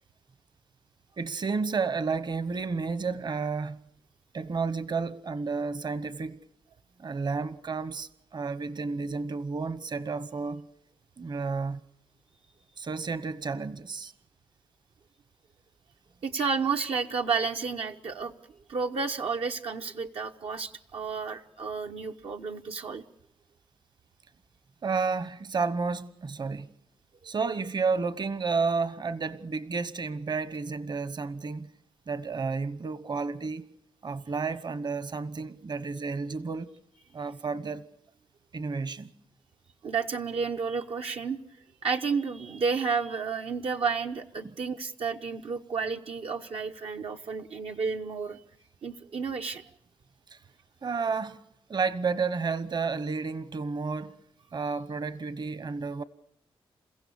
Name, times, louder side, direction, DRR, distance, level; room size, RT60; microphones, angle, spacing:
voice 1, 1.2-3.8 4.3-6.4 7.0-10.6 11.2-11.8 12.8-14.1 24.8-26.7 27.2-31.7 32.1-33.6 34.0-36.7 37.1-37.8 38.5-39.1 50.3-50.4 50.8-51.4 51.7-54.1 54.5-56.0, right 4 dB, 45° right, 1.1 m, -31 dB
voice 2, 16.2-18.3 18.7-23.0 39.8-41.4 41.8-48.4 48.8-49.7, right 5 dB, 70° right, 0.9 m, -31 dB
29.0 x 16.0 x 7.0 m
cardioid pair, 95°, 10 cm